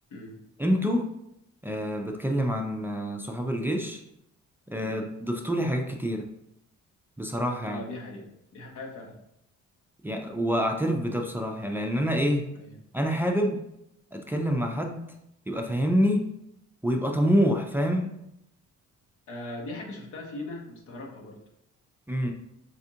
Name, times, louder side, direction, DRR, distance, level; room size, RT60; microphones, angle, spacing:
voice 1, 0.6-1.1 1.6-4.0 4.7-6.3 7.2-7.8 10.0-12.5 12.9-13.6 14.1-15.0 15.5-16.2 16.8-18.1 22.1-22.3, equal, 5° right, 2 dB, 0.3 m, -26 dB
voice 2, 7.6-9.2 12.5-12.7 19.3-21.4, left 2 dB, 85° left, 0 dB, 0.9 m, -40 dB
4.2 x 2.4 x 2.7 m, 0.79 s
cardioid pair, 90°, 30 cm